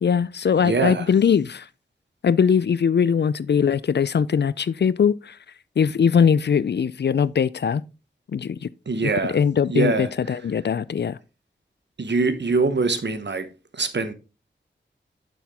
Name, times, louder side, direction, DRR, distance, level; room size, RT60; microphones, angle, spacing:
voice 1, 0.0-1.7 2.2-5.4 5.8-7.8 8.3-8.7 9.0-11.2, left 7 dB, 60° left, 0.4 m, -21 dB
voice 2, 0.6-1.1 8.9-9.4 9.7-10.4 12.0-13.5 13.7-14.1, right 3 dB, 60° right, 1.0 m, -24 dB
7.0 x 5.8 x 3.5 m
cardioid pair, 40°, 20 cm